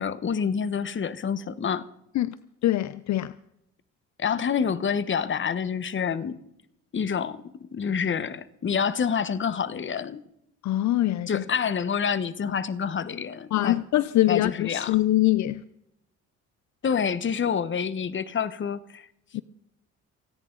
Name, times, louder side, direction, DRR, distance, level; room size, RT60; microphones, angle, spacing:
voice 1, 0.0-1.9 4.2-6.4 6.9-10.2 11.3-13.8 14.3-15.0 16.8-19.1, left 7 dB, 40° left, 1.1 m, -27 dB
voice 2, 2.6-3.3 10.6-11.4 13.5-15.6 19.3-19.4, left 15 dB, 65° left, 0.6 m, -23 dB
29.0 x 10.5 x 3.9 m
cardioid pair, 90°, 30 cm